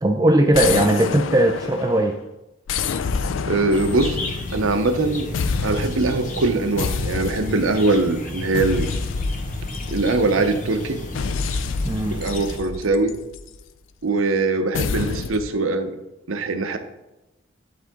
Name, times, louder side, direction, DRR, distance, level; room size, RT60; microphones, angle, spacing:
voice 1, 0.0-2.2 11.8-12.2, right 1 dB, 20° right, 4 dB, 0.4 m, -18 dB
sound 1, 0.5-2.1 2.7-5.0 5.3-6.2 6.8-7.8 8.5-10.4 11.1-13.6 14.7-15.5, left 5 dB, 70° left, 0.4 m, -27 dB
voice 2, 3.5-4.2 4.5-5.3 5.6-8.9 9.9-11.0 12.1-13.1 14.0-15.9 16.3-16.8, right 3 dB, 90° right, 7 dB, 0.8 m, -22 dB
sound 2, 3.7-12.6, left 2 dB, 40° left, 0.9 m, -33 dB
11.0 x 3.7 x 3.6 m, 0.98 s
head